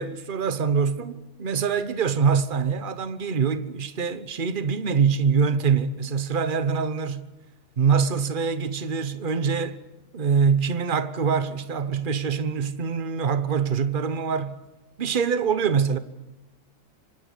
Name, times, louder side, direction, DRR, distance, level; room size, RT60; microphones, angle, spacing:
voice 1, 0.0-7.3 7.8-9.8 10.1-14.6 15.0-16.0, right 6 dB, 40° right, 1.2 m, -24 dB
27.0 x 24.0 x 8.4 m
omnidirectional pair, 1.4 m